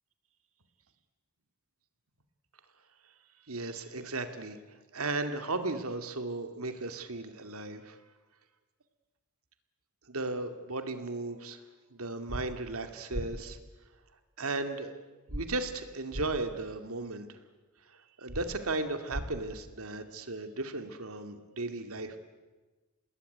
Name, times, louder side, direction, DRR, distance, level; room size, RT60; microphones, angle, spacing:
voice 1, 3.5-4.6 4.9-8.0 10.1-11.6 11.9-13.6 14.4-14.9 15.3-17.3 18.2-22.2, right 2 dB, 75° right, 8 dB, 2.3 m, -35 dB
sound 1, 12.3-12.4 13.1-13.3 15.3-15.4 16.1-16.3 18.3-18.4 19.1-19.3, equal, 40° right, 3.0 m, -35 dB
27.0 x 20.0 x 9.4 m, 1.2 s
head